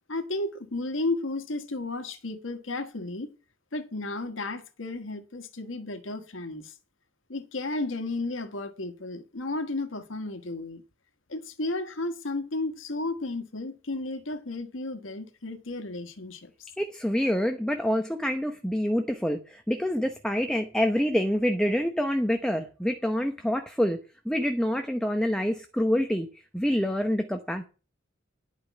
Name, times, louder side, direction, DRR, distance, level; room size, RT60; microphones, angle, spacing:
voice 1, 0.1-3.3 3.7-6.7 7.3-10.8 11.3-16.7, left 2 dB, 85° left, 1.4 m, -33 dB
voice 2, 16.8-24.0 24.2-26.3 26.5-27.6, equal, 5° left, 0.9 m, -26 dB
11.5 x 5.4 x 8.2 m
head